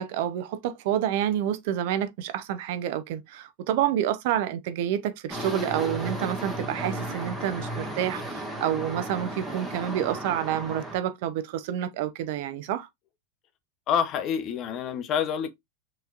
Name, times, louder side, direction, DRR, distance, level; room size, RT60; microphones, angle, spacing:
voice 1, 0.0-12.9, right 11 dB, 60° right, 0.6 m, -28 dB
sound 1, 5.3-11.0, right 1 dB, 5° right, 1.5 m, -34 dB
voice 2, 13.9-15.5, left 8 dB, 40° left, 0.7 m, -27 dB
5.7 x 3.2 x 2.4 m
supercardioid pair, 135°, 0 cm